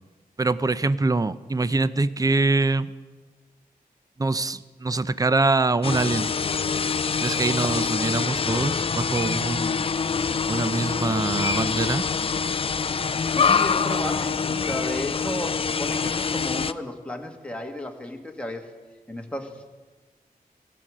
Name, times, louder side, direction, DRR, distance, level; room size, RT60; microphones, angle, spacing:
voice 1, 0.4-2.9 4.2-6.3 7.2-9.9 10.5-12.0, right 3 dB, 25° right, 16 dB, 0.4 m, -24 dB
sound 1, 5.8-16.7, left 5 dB, 35° left, 0.4 m, -25 dB
voice 2, 13.3-18.7 19.1-19.6, left 1 dB, 5° left, 2 dB, 1.5 m, -33 dB
17.0 x 7.7 x 6.2 m, 1.3 s
wide cardioid pair, 90°, 16 cm